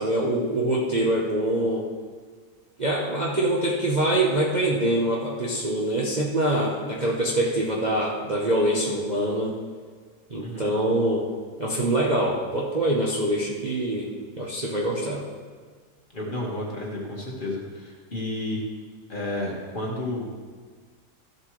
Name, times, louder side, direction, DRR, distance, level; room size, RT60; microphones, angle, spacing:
voice 1, 0.0-1.9 2.8-9.5 10.3-11.3 11.6-14.1 14.4-15.2, right 1 dB, 30° right, -4 dB, 0.9 m, -24 dB
voice 2, 10.4-10.8 16.1-18.6 19.1-20.3, left 1 dB, 30° left, -2 dB, 1.5 m, -31 dB
14.0 x 7.4 x 3.2 m, 1.5 s
omnidirectional pair, 1.8 m